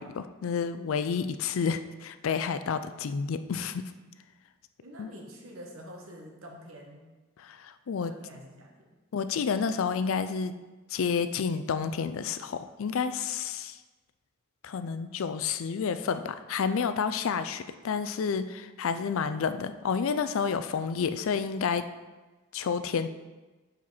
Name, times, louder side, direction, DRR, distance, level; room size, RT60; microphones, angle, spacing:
voice 1, 0.0-3.9 5.0-5.1 7.4-8.1 9.1-10.5 10.9-13.8 14.6-21.9 22.5-23.1, left 6 dB, 70° left, 11 dB, 0.4 m, -30 dB
voice 2, 4.8-7.1 8.1-8.9, equal, 75° right, 0 dB, 1.3 m, -47 dB
7.3 x 4.4 x 4.1 m, 1.2 s
head